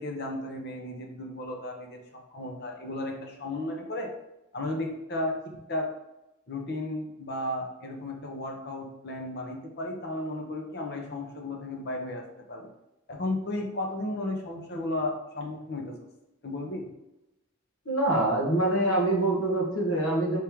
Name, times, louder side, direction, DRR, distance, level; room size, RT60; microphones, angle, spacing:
voice 1, 0.0-2.0 2.3-4.1 4.5-5.3 5.7-5.9 6.5-12.2 12.5-12.7 13.1-15.9 16.4-16.9, left 1 dB, 55° left, 2 dB, 0.8 m, -34 dB
voice 2, 17.8-20.4, right 1 dB, 90° left, -2 dB, 1.3 m, -25 dB
4.5 x 3.3 x 3.5 m, 0.92 s
head